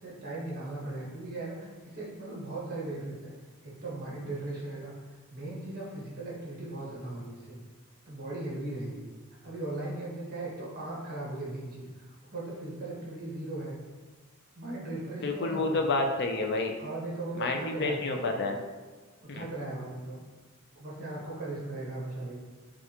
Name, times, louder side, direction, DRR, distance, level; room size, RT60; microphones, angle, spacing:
voice 1, 0.0-3.3 3.6-4.9 5.3-7.6 8.1-9.1 9.4-13.7 14.5-16.0 16.8-18.2 19.2-20.2 20.7-22.4, right 2 dB, 45° right, -5 dB, 1.2 m, -38 dB
voice 2, 15.2-16.7 17.4-18.6 19.3-19.4, left 3 dB, 50° left, 4 dB, 0.5 m, -29 dB
6.4 x 2.4 x 2.9 m, 1.4 s
head